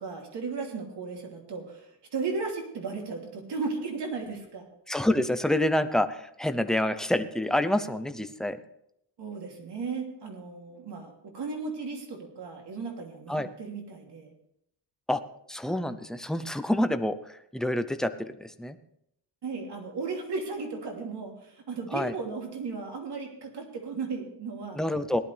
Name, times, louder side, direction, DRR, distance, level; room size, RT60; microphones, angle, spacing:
voice 1, 0.0-4.7 9.2-14.3 19.4-24.8, right 4 dB, 65° right, 1 dB, 3.2 m, -35 dB
voice 2, 4.9-8.6 13.3-13.5 15.1-15.2 15.5-18.8 21.9-22.1 24.7-25.2, left 1 dB, ahead, 9 dB, 0.7 m, -27 dB
18.5 x 12.0 x 3.4 m, 0.75 s
wide cardioid pair, 125°, 44 cm